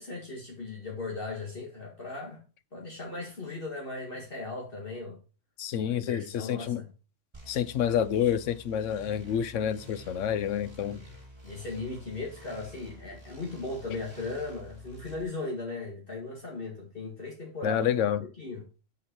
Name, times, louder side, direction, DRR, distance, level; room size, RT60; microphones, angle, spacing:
voice 1, 0.0-2.4 2.7-5.2 5.8-6.9 10.9-11.0 11.4-17.9 18.4-18.6, left 3 dB, 45° left, 2.0 m, -37 dB
voice 2, 5.6-6.8 7.5-11.0 17.6-18.2, left 9 dB, 85° left, 1.0 m, -28 dB
sound 1, 7.3-15.2, right 1 dB, 20° right, 2.1 m, -50 dB
7.0 x 6.4 x 4.5 m
omnidirectional pair, 1.3 m